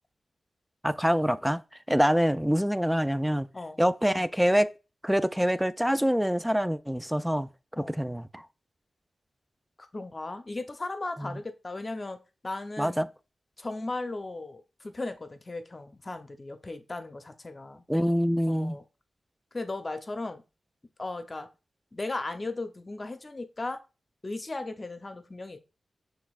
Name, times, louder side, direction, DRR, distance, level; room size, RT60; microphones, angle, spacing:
voice 1, 0.8-1.6 1.9-3.5 3.8-4.7 5.0-7.5 7.8-8.4 11.2-11.4 12.8-13.1 17.9-18.8, equal, 5° right, 0.4 m, -25 dB
voice 2, 9.8-12.2 12.4-13.1 13.6-17.8 18.5-18.8 19.5-20.4 21.0-21.5 21.9-23.8 24.2-25.6, left 2 dB, 40° left, 0.8 m, -36 dB
6.0 x 3.4 x 2.4 m
cardioid pair, 45°, 0 cm